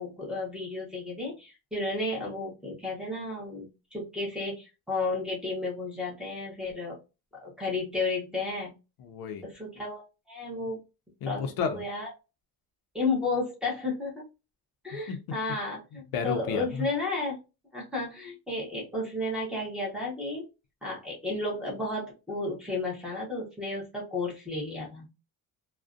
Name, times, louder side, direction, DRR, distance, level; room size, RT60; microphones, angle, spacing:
voice 1, 0.0-7.0 7.4-8.7 9.4-10.8 11.3-11.4 11.7-12.1 12.9-14.3 14.8-17.4 17.7-20.4 20.8-25.1, left 3 dB, ahead, -6 dB, 0.7 m, -33 dB
voice 2, 9.0-9.4 11.2-11.8 15.1-15.2 15.9-16.8, left 6 dB, 65° left, 6 dB, 0.5 m, -32 dB
2.4 x 2.1 x 2.4 m, 0.28 s
cardioid pair, 180°, 40 cm